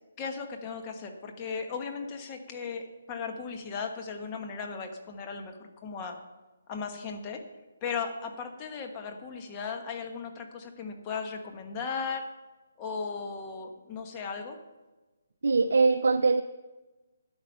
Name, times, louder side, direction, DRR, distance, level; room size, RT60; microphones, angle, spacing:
voice 1, 0.2-6.2 6.7-7.4 7.8-12.2 12.8-14.6, left 5 dB, 25° left, 4 dB, 1.2 m, -36 dB
voice 2, 15.4-16.4, right 4 dB, 75° right, 9 dB, 0.5 m, -22 dB
11.0 x 8.7 x 5.5 m, 1.2 s
hypercardioid pair, 160°, 0 cm